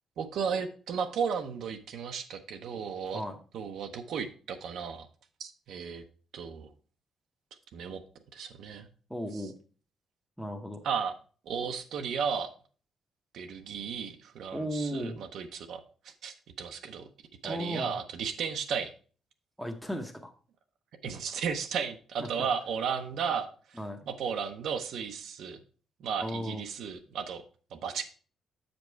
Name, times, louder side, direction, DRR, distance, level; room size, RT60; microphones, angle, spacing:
voice 1, 0.2-3.2 3.5-5.1 5.4-6.0 6.3-6.7 7.7-8.0 8.3-8.9 10.8-11.1 11.5-12.5 13.3-15.8 16.2-17.0 17.4-18.9 21.0-23.8 24.1-25.6 26.0-27.4 27.7-28.0, right 6 dB, 70° right, 5 dB, 0.7 m, -34 dB
voice 2, 9.1-9.5 10.4-10.8 14.5-15.2 17.4-17.9 19.6-20.3 22.2-22.3 23.8-24.0 26.2-26.6, equal, ahead, 4 dB, 0.8 m, -35 dB
7.3 x 5.2 x 4.5 m, 0.40 s
cardioid pair, 130°, 0 cm